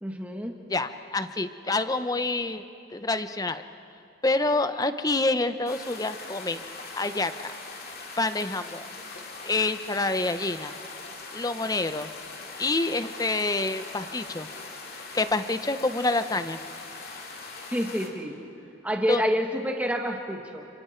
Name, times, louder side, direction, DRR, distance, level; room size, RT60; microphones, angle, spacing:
voice 1, 0.0-0.6 17.7-18.4 18.8-20.7, equal, 10° right, 2 dB, 1.7 m, -28 dB
voice 2, 0.7-2.6 2.9-3.6 4.2-6.6 6.9-7.5 8.2-8.9 9.4-10.7 11.3-12.1 12.6-14.5 15.1-16.6 19.1-19.3, left 2 dB, 20° left, 10 dB, 0.7 m, -27 dB
sound 1, 5.7-18.1, left 3 dB, 50° left, 2.7 m, -41 dB
29.5 x 27.5 x 4.5 m, 2.8 s
head